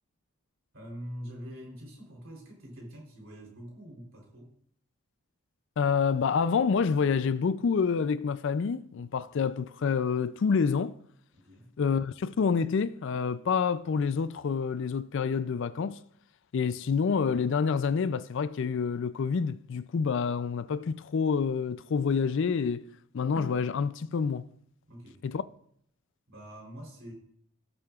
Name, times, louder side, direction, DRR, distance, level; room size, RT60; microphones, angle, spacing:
voice 1, 0.7-4.5 11.3-11.7 16.6-16.8 24.9-25.2 26.3-27.1, equal, 60° right, 3.5 m, -45 dB
voice 2, 5.8-10.9 11.8-16.0 16.5-22.8 23.1-24.5 25.3-25.4, left 5 dB, 55° left, 0.4 m, -27 dB
17.5 x 7.6 x 2.4 m
head